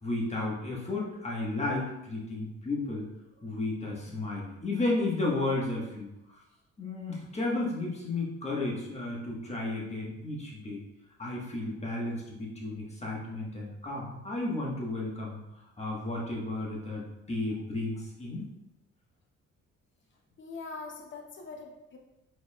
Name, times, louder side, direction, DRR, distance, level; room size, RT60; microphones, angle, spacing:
voice 1, 0.0-3.1 3.4-6.1 6.8-10.8 11.2-18.5, left 2 dB, 20° left, -3 dB, 1.5 m, -33 dB
voice 2, 20.4-22.0, left 3 dB, 40° left, 1 dB, 0.8 m, -42 dB
4.7 x 4.3 x 2.4 m, 0.92 s
cardioid pair, 90°, 30 cm